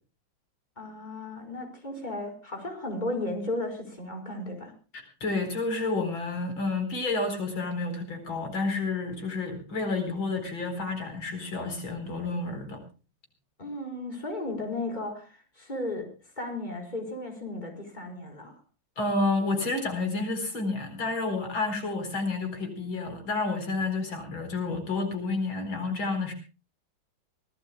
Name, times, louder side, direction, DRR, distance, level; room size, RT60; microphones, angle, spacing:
voice 1, 0.8-4.7 13.6-16.1 16.4-18.6, left 2 dB, 20° left, 2 dB, 4.8 m, -35 dB
voice 2, 5.2-12.8 19.0-26.3, left 3 dB, 85° left, 6 dB, 5.1 m, -30 dB
24.5 x 18.0 x 2.3 m, 0.34 s
omnidirectional pair, 2.1 m